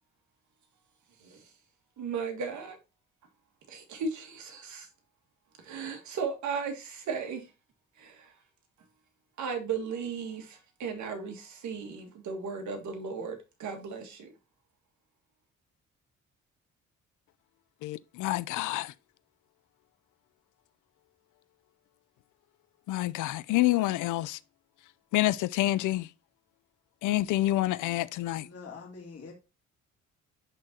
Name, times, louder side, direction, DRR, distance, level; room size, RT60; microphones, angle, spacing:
voice 1, 1.2-1.5 2.0-2.8 3.7-4.9 5.6-7.5 8.0-8.3 9.4-14.3, right 5 dB, 70° right, 1.8 m, -36 dB
voice 2, 17.8-18.9 22.9-24.4 25.1-26.1 27.0-28.5, left 16 dB, 80° left, 0.5 m, -28 dB
voice 3, 28.4-29.3, left 5 dB, 50° left, 2.1 m, -44 dB
10.5 x 3.8 x 2.8 m
cardioid pair, 90°, 30 cm